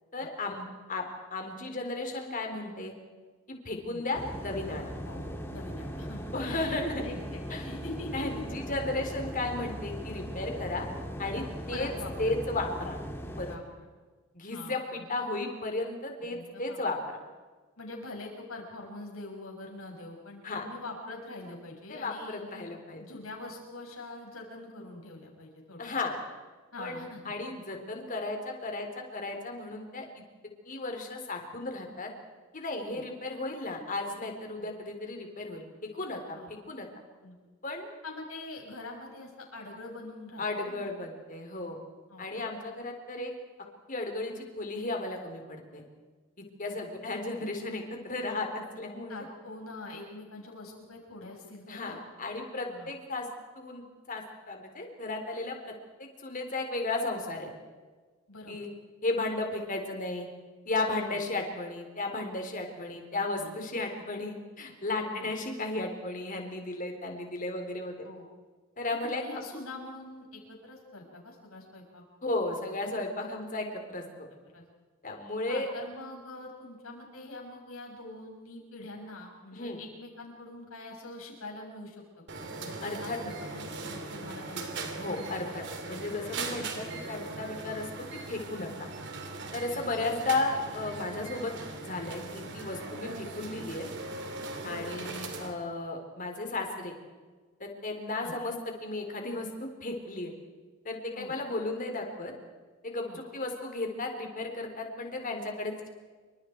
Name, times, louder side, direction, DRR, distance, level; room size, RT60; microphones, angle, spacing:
voice 1, 0.1-1.0 1.3-2.9 3.5-4.9 6.3-7.0 7.5-7.6 8.1-10.9 11.2-11.9 12.2-13.0 13.4-13.6 14.3-17.0 20.4-20.6 21.9-23.0 25.8-26.2 26.8-30.2 30.7-32.1 32.5-35.6 35.9-36.9 37.6-37.9 40.4-41.8 42.2-43.3 43.9-45.8 46.6-49.2 51.7-53.3 53.6-55.7 56.0-57.5 58.5-58.7 59.0-60.3 60.7-68.0 68.8-69.4 72.2-74.0 75.0-75.7 79.5-79.8 82.8-83.2 85.0-88.9 89.5-91.5 91.8-93.9 94.6-96.9 97.6-98.6 98.8-100.3 100.8-102.3 102.8-105.9, left 2 dB, 40° left, 3 dB, 4.0 m, -34 dB
sound 1, 4.1-13.6, equal, 10° left, 2.2 m, -39 dB
voice 2, 5.1-8.4 9.7-9.8 11.2-11.4 11.7-12.3 13.5-13.6 14.5-15.0 16.3-16.8 17.8-22.5 23.0-25.8 26.7-27.3 32.9-33.0 34.6-34.7 36.3-36.5 37.2-37.4 38.0-40.9 42.1-42.3 46.7-46.9 49.1-52.0 52.7-52.9 58.3-58.6 61.0-61.2 62.9-63.6 65.1-65.3 68.0-68.3 68.9-72.0 74.5-74.6 75.5-82.0 82.6-85.1 86.5-86.6 89.7-89.8 94.6-94.9 98.2-98.3 101.1-101.3 103.1-103.2, left 2 dB, 85° left, 0 dB, 7.0 m, -44 dB
sound 2, 82.3-95.6, right 3 dB, 55° right, 3.1 m, -40 dB
28.5 x 25.5 x 4.7 m, 1.4 s
head